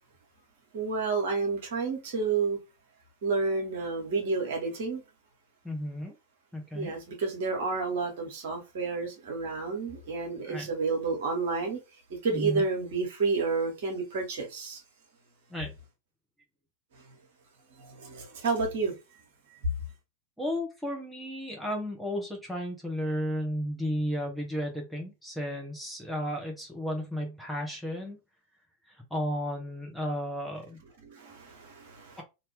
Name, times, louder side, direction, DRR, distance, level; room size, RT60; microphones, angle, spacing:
voice 1, 0.7-2.6 3.2-5.0 6.7-14.8 16.9-17.2 17.8-19.2 19.5-19.8 31.0-32.2, right 4 dB, 55° right, 1.4 m, -30 dB
voice 2, 5.6-6.1 6.5-6.9 10.5-10.7 12.3-12.6 15.5-15.7 20.4-28.2 29.1-30.8, equal, ahead, 1.0 m, -33 dB
2.9 x 2.8 x 3.4 m
figure-of-eight pair, 90°, 0 cm